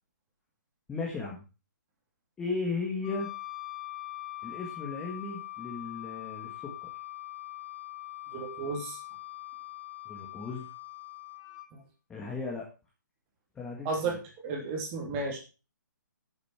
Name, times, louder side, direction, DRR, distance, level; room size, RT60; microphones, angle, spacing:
voice 1, 0.9-1.4 2.4-3.3 4.4-6.9 10.0-10.7 12.1-12.7 13.5-14.1, left 4 dB, 10° left, -2 dB, 1.7 m, -36 dB
Wind instrument woodwind instrument, 3.0-11.7, left 17 dB, 25° left, 1.8 m, -42 dB
voice 2, 8.3-9.0 11.7-11.8 13.8-15.4, right 4 dB, 20° right, 1 dB, 2.7 m, -33 dB
10.0 x 7.3 x 4.6 m, 0.32 s
hypercardioid pair, 165°, 10 cm